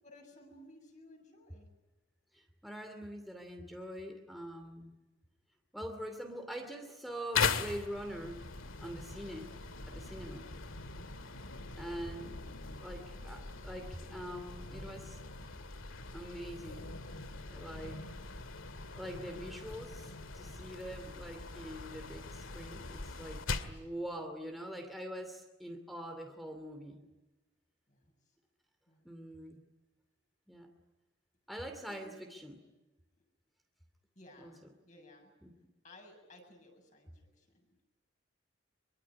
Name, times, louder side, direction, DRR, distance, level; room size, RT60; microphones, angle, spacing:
voice 1, 0.0-1.7 10.4-10.6 17.9-18.0 27.9-28.4 28.9-29.1 31.9-32.0 33.1-33.3 34.1-35.4 35.8-37.7, left 1 dB, 35° left, 2 dB, 7.5 m, -58 dB
voice 2, 2.3-4.9 5.7-8.5 8.8-9.5 9.9-10.5 11.8-12.4 12.8-15.2 16.1-17.0 17.5-18.1 18.9-27.0 29.0-29.6 30.5-30.7 31.5-32.6 34.4-34.5 35.4-35.5, equal, ahead, 3 dB, 2.6 m, -44 dB
sound 1, 7.3-23.8, left 5 dB, 90° left, 2.1 m, -41 dB
25.0 x 23.5 x 9.7 m, 1.1 s
head